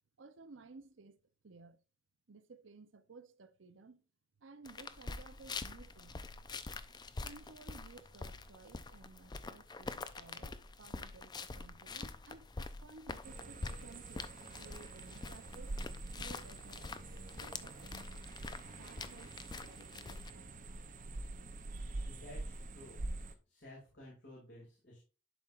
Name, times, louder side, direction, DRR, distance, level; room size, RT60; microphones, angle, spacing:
voice 1, 0.2-1.8 2.3-4.0 4.4-6.2 7.2-14.3 14.6-15.8 16.1-17.0 17.4-18.1 18.8-20.5, right 3 dB, 85° right, 0.7 m, -57 dB
sound 1, 4.6-20.3, left 3 dB, 20° left, 0.4 m, -46 dB
sound 2, 13.2-23.3, right 2 dB, 45° right, 0.6 m, -46 dB
voice 2, 22.0-23.0 23.5-25.0, left 1 dB, 65° left, 2.5 m, -54 dB
11.0 x 4.4 x 2.5 m
head